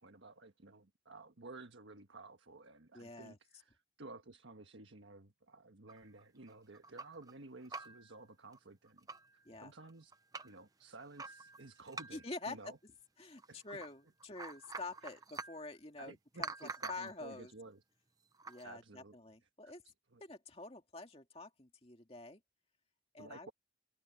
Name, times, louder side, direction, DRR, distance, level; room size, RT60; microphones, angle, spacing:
voice 1, 0.0-9.1 9.3-10.1 10.4-12.8 13.5-13.6 15.0-15.1 16.0-17.8 18.6-19.2 19.6-19.7 20.1-20.2 23.2-23.5, right 2 dB, 90° right, 1.5 m, -54 dB
voice 2, 2.9-3.4 9.5-9.7 12.1-12.7 13.2-17.5 18.5-19.8 20.2-22.4 23.1-23.5, left 3 dB, 30° left, 2.2 m, -47 dB
sound 1, 5.9-7.3 7.6-8.1 8.5-8.6 8.9-9.4 9.8-10.6 11.2-12.4 13.4-13.9 14.2-15.7 16.4-17.2 18.3-18.6, right 4 dB, 20° right, 0.8 m, -47 dB
head